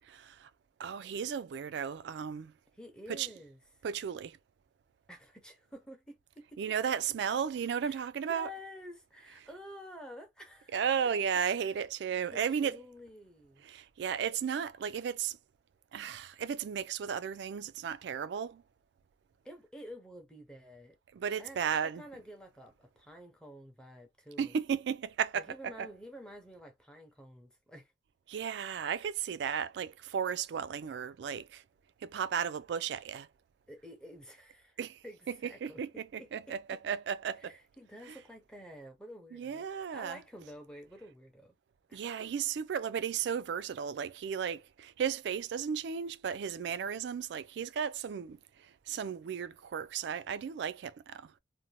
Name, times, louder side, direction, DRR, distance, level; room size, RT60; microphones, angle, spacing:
voice 1, 0.1-0.5 0.8-2.5 3.1-3.3 3.8-4.4 6.6-8.5 10.7-12.8 13.6-15.4 15.9-18.6 21.1-22.0 24.4-25.9 28.3-31.6 32.0-33.3 34.8-35.0 35.3-37.6 38.1-38.2 39.3-40.2 41.9-48.4 48.9-51.4, right 7 dB, 70° right, 0.3 m, -34 dB
voice 2, 2.7-3.6 5.1-6.6 7.8-10.8 12.2-13.6 19.4-21.0 21.4-24.6 25.3-27.9 33.7-36.3 37.4-39.7 39.9-41.6 41.9-42.3, equal, 5° left, 0.6 m, -50 dB
2.6 x 2.1 x 2.9 m
head